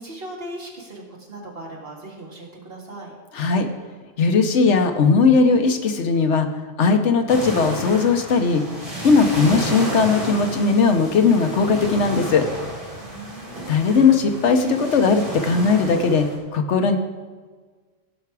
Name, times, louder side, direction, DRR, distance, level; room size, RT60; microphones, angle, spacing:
voice 1, 0.0-3.1 13.0-13.7, right 1 dB, 50° right, -2 dB, 2.3 m, -38 dB
voice 2, 3.3-3.7 4.2-6.5 6.8-8.6 9.0-12.5 13.7-17.0, left 4 dB, 70° left, 6 dB, 1.2 m, -18 dB
sound 1, 7.3-16.4, right 1 dB, 25° right, 2.5 m, -32 dB
16.5 x 5.8 x 4.8 m, 1.4 s
omnidirectional pair, 1.3 m